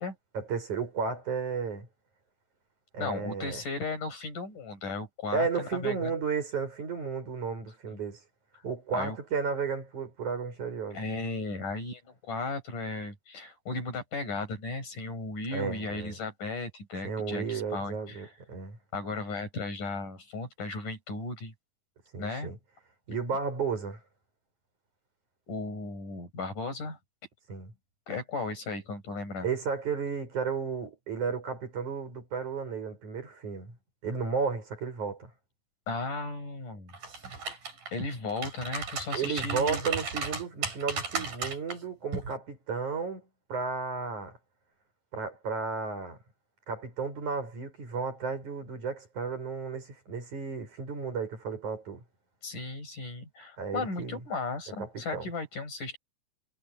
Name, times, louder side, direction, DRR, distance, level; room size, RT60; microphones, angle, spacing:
voice 1, 0.3-1.9 2.9-3.6 5.3-8.2 8.6-11.0 15.5-16.2 17.0-18.8 22.1-22.6 23.1-24.0 27.5-27.7 29.4-33.8 34.0-35.3 39.1-44.4 45.1-46.2 46.7-52.0 53.6-54.2 54.8-55.3, right 5 dB, 65° right, 8.5 m, -33 dB
voice 2, 3.0-6.1 8.9-9.2 10.9-18.3 18.9-21.5 22.2-22.5 25.5-27.0 28.1-29.5 35.9-36.9 37.2-37.3 37.9-39.8 52.4-56.0, left 3 dB, 80° left, 9.7 m, -35 dB
sound 1, 36.9-37.9 38.3-41.8 42.1-42.3, right 5 dB, 90° right, 7.4 m, -34 dB
omnidirectional pair, 3.6 m